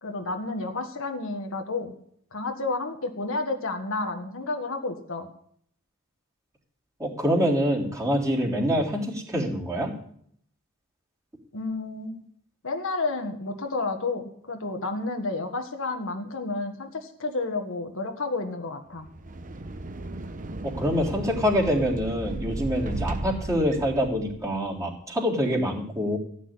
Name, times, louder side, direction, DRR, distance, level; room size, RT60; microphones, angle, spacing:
voice 1, 0.0-1.9 2.3-5.3 11.5-12.2 12.6-19.1, left 3 dB, 65° left, 4 dB, 1.6 m, -31 dB
voice 2, 7.0-9.9 20.6-26.2, equal, 15° right, -4 dB, 3.5 m, -25 dB
sound 1, 19.0-24.6, right 2 dB, 40° right, 0.9 m, -35 dB
15.0 x 6.3 x 9.7 m, 0.63 s
head